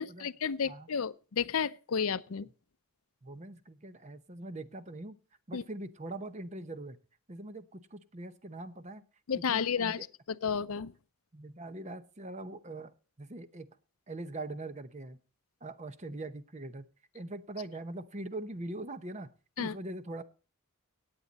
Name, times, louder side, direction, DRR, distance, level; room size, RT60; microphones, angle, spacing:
voice 1, 0.0-2.5 5.5-5.6 9.3-10.0 10.3-10.9 19.6-19.7, left 6 dB, 70° left, 0.5 m, -32 dB
voice 2, 3.2-5.2 5.5-7.0 7.3-9.0 9.5-10.1 11.3-13.8 14.1-15.2 15.6-16.9 17.1-19.3 19.6-20.2, right 2 dB, 30° right, 0.8 m, -42 dB
16.5 x 8.9 x 4.1 m
head